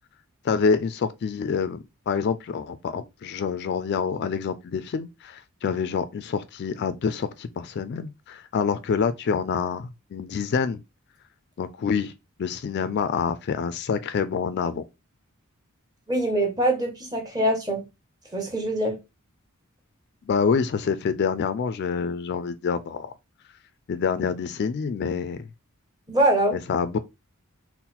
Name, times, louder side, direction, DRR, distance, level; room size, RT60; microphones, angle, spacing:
voice 1, 0.4-10.8 11.6-12.1 12.4-14.8 20.2-23.1 23.9-25.4 26.5-27.0, left 6 dB, 50° left, 0.3 m, -27 dB
voice 2, 16.1-17.9 18.3-19.0 26.1-26.6, right 1 dB, 20° right, 1.0 m, -23 dB
3.9 x 2.1 x 4.2 m
head